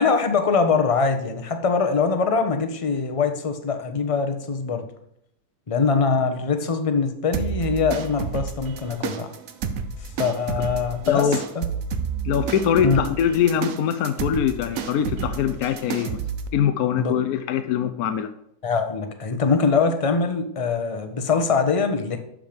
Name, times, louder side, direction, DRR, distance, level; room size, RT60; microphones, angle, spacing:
voice 1, 0.0-4.9 5.7-9.3 10.2-11.3 11.5-11.6 12.8-13.0 17.0-17.1 18.6-22.2, left 5 dB, 25° left, 7 dB, 0.8 m, -22 dB
sound 1, 7.3-16.5, right 7 dB, 65° right, 1.2 m, -30 dB
voice 2, 11.1-11.4 12.2-16.2 16.5-18.3, left 8 dB, 75° left, 9 dB, 1.1 m, -23 dB
12.0 x 5.1 x 5.2 m, 0.75 s
omnidirectional pair, 1.6 m